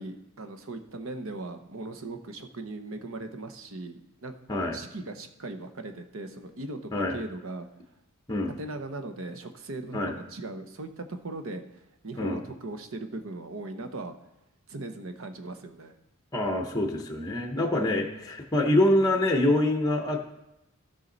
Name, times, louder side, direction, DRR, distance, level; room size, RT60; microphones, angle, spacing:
voice 1, 0.0-4.3 4.7-7.7 8.6-14.1 14.7-15.9, right 2 dB, 65° right, 7 dB, 0.9 m, -39 dB
voice 2, 16.3-20.2, left 1 dB, 15° left, 2 dB, 0.9 m, -25 dB
16.0 x 5.6 x 4.0 m, 0.93 s
head